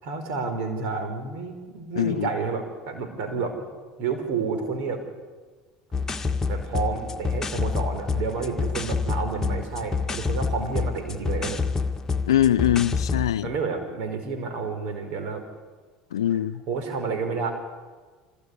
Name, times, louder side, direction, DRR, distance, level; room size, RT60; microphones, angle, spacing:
voice 1, 0.0-3.7 4.0-5.0 6.5-11.6 13.4-15.4 16.3-16.4 16.7-17.5, right 4 dB, 65° right, 7 dB, 5.0 m, -30 dB
voice 2, 2.0-2.3 12.3-13.5 16.1-16.6, left 11 dB, 85° left, 12 dB, 0.6 m, -22 dB
sound 1, 5.9-13.3, left 5 dB, 20° left, 2.0 m, -28 dB
26.0 x 18.0 x 9.9 m, 1.4 s
hypercardioid pair, 80°, 3 cm